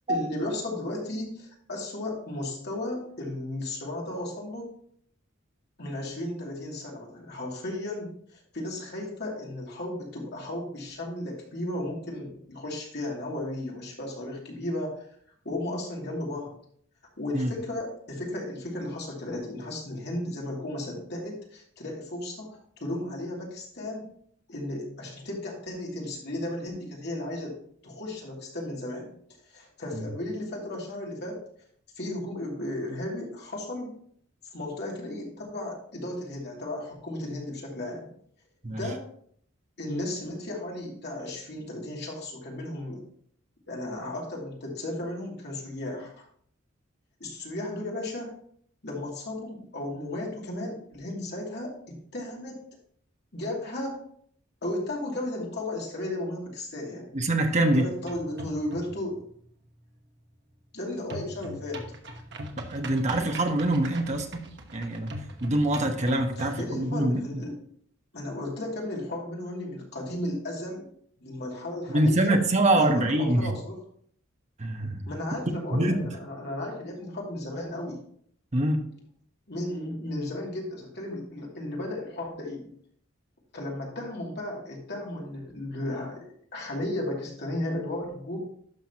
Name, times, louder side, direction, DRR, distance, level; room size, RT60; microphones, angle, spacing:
voice 1, 0.1-4.7 5.8-15.1 15.4-16.5 17.2-24.0 24.5-27.6 27.8-29.1 29.5-31.4 32.0-34.0 34.5-38.1 38.8-39.0 39.8-43.0 43.7-46.2 47.2-48.3 48.8-52.6 53.3-54.0 54.6-57.2 57.7-59.2 60.7-61.8 66.4-67.6 68.1-70.8 71.2-72.3 72.7-73.8 75.1-78.0 79.5-82.7 83.5-88.4, left 1 dB, 55° left, -2 dB, 2.6 m, -34 dB
voice 2, 57.1-57.8 62.7-64.5 64.7-65.1 65.4-67.2 71.9-73.5 74.6-75.1 75.7-76.1 78.5-78.8, right 1 dB, 35° right, 4 dB, 1.0 m, -24 dB
sound 1, 58.0-59.1 61.1-66.7, equal, 60° right, 1.2 m, -41 dB
12.0 x 6.0 x 2.9 m, 0.62 s
head